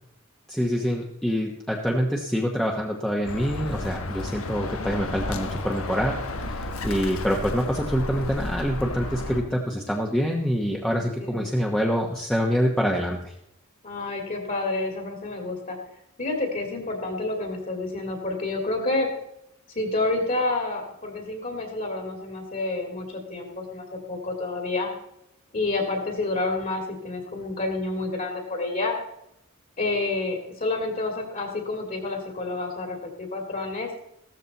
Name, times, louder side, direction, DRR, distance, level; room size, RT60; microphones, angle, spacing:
voice 1, 0.5-6.2 6.4-13.3, equal, 5° left, -1 dB, 1.1 m, -26 dB
Bird, 3.3-9.4, left 2 dB, 80° left, 1.3 m, -32 dB
voice 2, 11.0-11.5 13.8-15.8 16.2-19.1 19.7-24.9 25.5-29.0 29.8-33.9, left 2 dB, 40° left, 2 dB, 2.5 m, -29 dB
15.5 x 13.5 x 4.1 m, 0.81 s
head